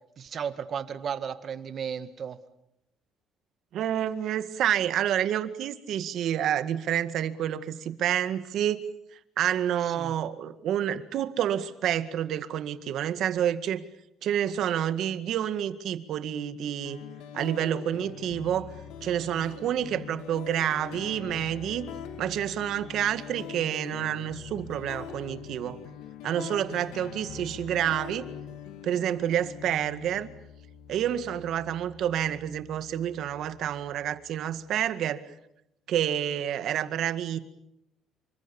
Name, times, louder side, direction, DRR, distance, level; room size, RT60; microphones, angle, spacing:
voice 1, 0.2-2.4 9.8-10.1 33.4-33.5, right 7 dB, 40° right, 10 dB, 1.9 m, -34 dB
voice 2, 3.7-8.8 9.4-13.8 14.2-17.0 17.3-18.7 19.0-21.9 22.2-25.8 26.2-28.2 28.8-30.3 30.9-35.2 35.9-37.4, right 10 dB, 60° right, 11 dB, 1.9 m, -28 dB
sound 1, 16.9-34.8, left 8 dB, 85° left, 3.1 m, -43 dB
28.5 x 25.0 x 7.2 m, 0.82 s
cardioid pair, 125°, 0 cm